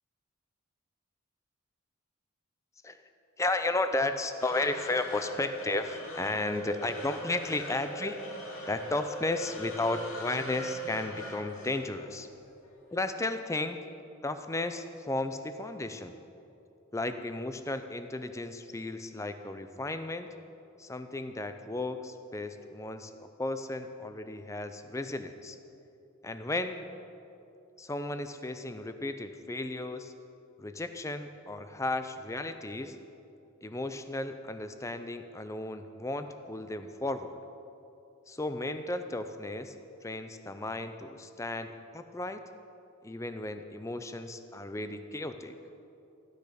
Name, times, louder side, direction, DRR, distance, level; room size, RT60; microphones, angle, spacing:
voice 1, 3.4-8.2 8.7-12.3 12.9-13.8 14.2-16.2 16.9-20.3 20.8-25.6 26.2-26.8 27.8-30.1 30.6-33.0 33.6-37.4 38.3-39.7 40.0-42.4 43.0-45.6, left 2 dB, 15° left, 9 dB, 0.5 m, -34 dB
sound 1, 4.4-12.8, right 1 dB, 85° left, 2.1 m, -41 dB
14.0 x 9.7 x 5.1 m, 2.8 s
head